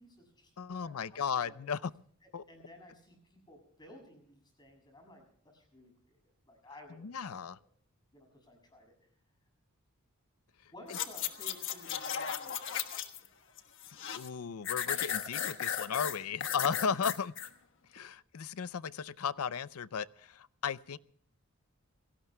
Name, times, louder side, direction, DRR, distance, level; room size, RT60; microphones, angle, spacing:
voice 1, 0.0-1.8 2.5-6.2 6.5-7.7 8.1-8.9 10.7-12.9, left 1 dB, 20° left, 4 dB, 6.8 m, -56 dB
voice 2, 0.6-1.9 2.3-2.4 7.0-7.6 14.1-17.3 17.9-21.0, left 6 dB, 85° left, 18 dB, 0.6 m, -35 dB
sound 1, 10.9-13.3 13.6-14.3 14.7-17.5 18.0-18.1, left 9 dB, 60° left, 1.3 m, -35 dB
28.5 x 18.0 x 2.2 m, 0.62 s
head